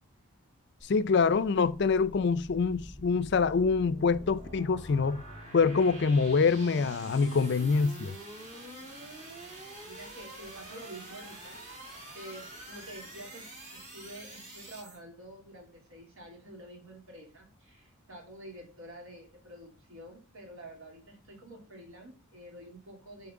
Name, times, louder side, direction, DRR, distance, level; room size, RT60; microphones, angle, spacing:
voice 1, 0.8-5.2 5.5-8.2, left 5 dB, 50° left, 0.4 m, -25 dB
sound 1, 0.8-15.0, right 1 dB, 35° right, 2.5 m, -46 dB
voice 2, 8.8-23.3, right 1 dB, 70° right, 2.9 m, -49 dB
9.5 x 4.2 x 3.6 m
head